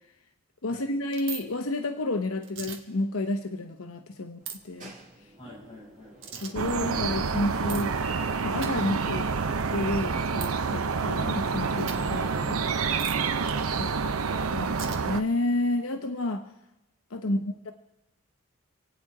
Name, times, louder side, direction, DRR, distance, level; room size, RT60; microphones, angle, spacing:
voice 1, 0.6-4.9 6.4-7.9 8.4-9.3 9.7-12.6 13.8-14.0 14.5-16.5 17.1-17.7, left 2 dB, 75° left, 6 dB, 0.9 m, -30 dB
sound 1, 1.1-1.4 2.4-2.8 4.5-4.6 6.2-6.5 7.7-7.8 8.6-8.7 10.4-10.5 11.8-12.0 13.0-13.2 14.8-15.0, right 7 dB, 60° right, 1.6 m, -37 dB
sound 2, 4.4-16.0, right 2 dB, 35° right, 2.6 m, -48 dB
voice 2, 5.4-6.2 17.2-17.5, left 1 dB, 25° left, -6 dB, 7.4 m, -50 dB
sound 3, 6.6-15.2, right 5 dB, 90° right, 0.7 m, -28 dB
27.0 x 9.0 x 4.9 m, 0.94 s
head